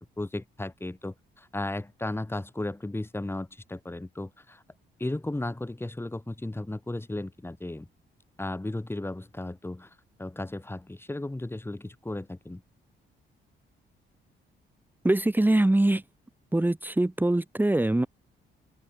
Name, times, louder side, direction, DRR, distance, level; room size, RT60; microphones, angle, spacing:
voice 1, 0.2-4.6 5.0-7.9 8.4-12.6, left 2 dB, 10° left, 6.8 m, -35 dB
voice 2, 15.0-16.0 16.5-18.1, right 1 dB, 10° right, 2.0 m, -23 dB
open air
cardioid pair, 90°, 20 cm